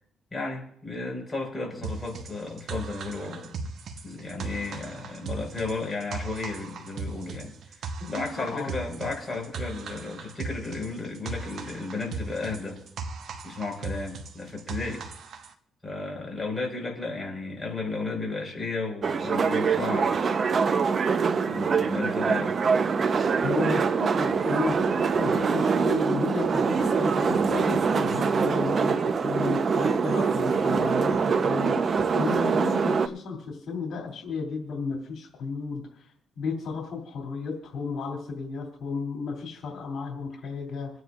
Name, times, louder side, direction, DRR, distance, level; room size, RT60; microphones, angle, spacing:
voice 1, 0.3-3.6 4.0-12.8 13.4-15.0 15.8-20.4 21.4-22.5, left 3 dB, 20° left, 0 dB, 5.0 m, -34 dB
sound 1, 1.8-15.5, right 4 dB, 65° right, 1.2 m, -38 dB
voice 2, 8.3-8.7 23.4-40.9, left 4 dB, 70° left, 0 dB, 2.9 m, -33 dB
sound 2, 19.0-33.1, right 5 dB, 45° right, 0.9 m, -24 dB
28.0 x 9.4 x 2.6 m, 0.67 s
cardioid pair, 90°, 0 cm